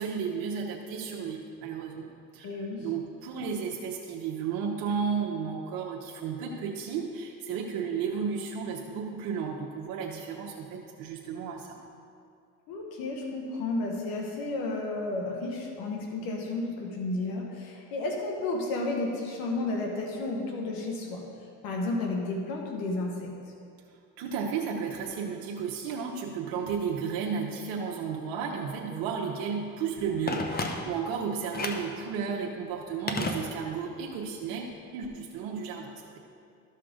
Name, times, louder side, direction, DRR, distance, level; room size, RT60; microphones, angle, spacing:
voice 1, 0.0-2.5 2.8-11.8 24.2-36.2, right 6 dB, 75° right, -2 dB, 1.0 m, -33 dB
voice 2, 2.4-2.9 12.7-21.2 21.6-23.5, left 2 dB, 75° left, 1 dB, 1.3 m, -32 dB
Telephone, 30.3-31.1 31.5-31.9 33.1-33.9 34.2-34.3, left 3 dB, 25° left, 0.9 m, -33 dB
13.0 x 5.7 x 3.7 m, 2.4 s
supercardioid pair, 90°, 35 cm